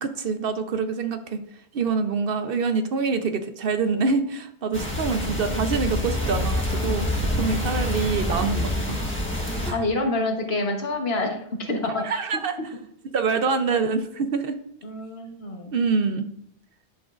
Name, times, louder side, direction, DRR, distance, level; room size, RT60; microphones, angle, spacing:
voice 1, 0.0-1.4 1.7-7.1 7.4-9.0 9.6-9.8 11.9-12.6 13.1-14.6 15.7-16.3, right 5 dB, 65° right, 8 dB, 0.8 m, -25 dB
sound 1, 4.7-9.7, left 1 dB, 10° left, 1.3 m, -26 dB
voice 2, 9.7-11.4 11.7-12.2 14.8-15.7, left 2 dB, 70° left, 2 dB, 1.4 m, -27 dB
10.5 x 6.2 x 2.5 m, 0.71 s
omnidirectional pair, 1.1 m